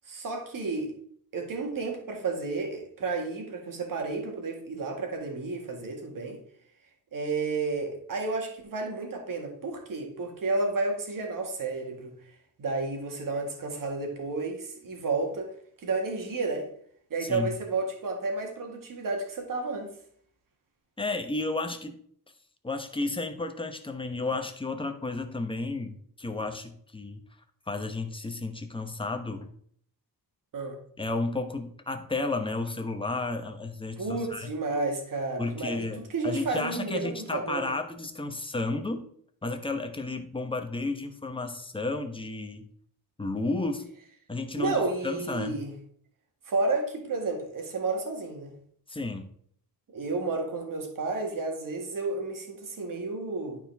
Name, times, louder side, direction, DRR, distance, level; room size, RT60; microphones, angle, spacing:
voice 1, 0.1-0.9 1.3-6.4 7.1-12.1 12.6-15.5 15.8-16.7 17.1-19.9 30.5-30.8 34.0-37.7 44.6-45.7 46.5-48.5 49.9-53.6, right 3 dB, 55° right, 2.0 m, -31 dB
voice 2, 21.0-22.0 22.6-27.2 27.7-29.5 31.0-34.5 35.4-39.0 39.4-42.7 43.2-43.9 44.3-45.6 48.9-49.3, left 3 dB, 15° left, 0.9 m, -32 dB
11.5 x 4.5 x 3.5 m
wide cardioid pair, 125°, 39 cm